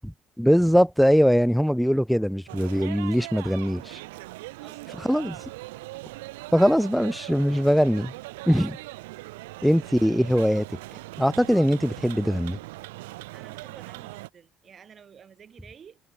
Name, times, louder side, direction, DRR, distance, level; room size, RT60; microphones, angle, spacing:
voice 1, 0.4-4.0 5.0-5.4 6.5-8.1 8.5-8.8 9.6-10.7 11.2-12.6, equal, ahead, 0.7 m, -21 dB
sound 1, 2.5-14.3, right 21 dB, 80° right, 1.3 m, -40 dB
voice 2, 4.6-5.3 13.3-16.0, right 7 dB, 45° right, 6.8 m, -51 dB
hypercardioid pair, 55°, 0 cm